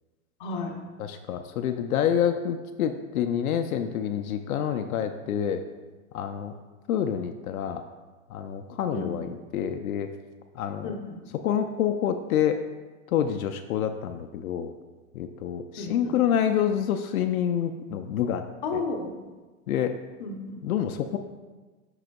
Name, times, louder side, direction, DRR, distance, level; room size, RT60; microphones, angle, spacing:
voice 1, 0.4-0.7 8.9-9.1 10.8-11.2 15.8-16.1 18.6-19.1 20.2-20.6, left 3 dB, 35° left, 1 dB, 0.8 m, -32 dB
voice 2, 1.0-5.6 6.1-6.5 6.9-7.9 8.3-10.1 10.6-11.0 11.4-12.6 13.1-14.7 15.1-18.4 18.7-18.8 19.7-20.0 20.6-21.2, left 9 dB, 75° left, 6 dB, 0.5 m, -27 dB
7.7 x 6.1 x 2.2 m, 1.3 s
supercardioid pair, 180°, 43 cm